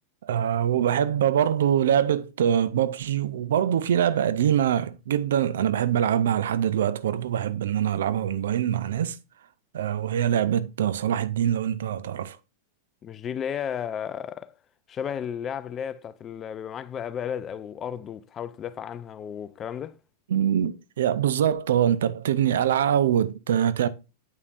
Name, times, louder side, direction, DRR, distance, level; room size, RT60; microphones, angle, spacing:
voice 1, 0.2-9.2 9.7-12.4 20.3-23.9, right 9 dB, 80° right, 0.5 m, -24 dB
voice 2, 13.0-14.5 14.9-20.0, left 8 dB, 30° left, 0.4 m, -33 dB
8.1 x 5.5 x 2.5 m
hypercardioid pair, 120°, 0 cm